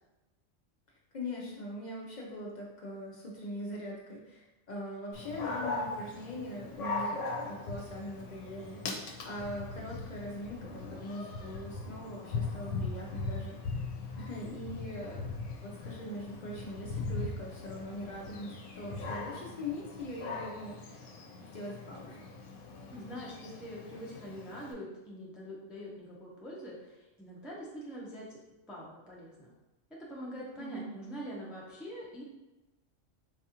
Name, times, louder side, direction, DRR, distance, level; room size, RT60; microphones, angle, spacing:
voice 1, 0.9-13.8 14.2-15.3 15.6-21.0 21.5-22.2 30.6-30.9, left 1 dB, 60° left, -3 dB, 0.5 m, -42 dB
Dog, 5.1-24.7, left 3 dB, 75° left, 0.9 m, -40 dB
voice 2, 22.9-28.4 28.7-29.5 30.0-32.2, equal, ahead, -5 dB, 0.3 m, -44 dB
4.0 x 2.3 x 2.8 m, 1.0 s
omnidirectional pair, 1.3 m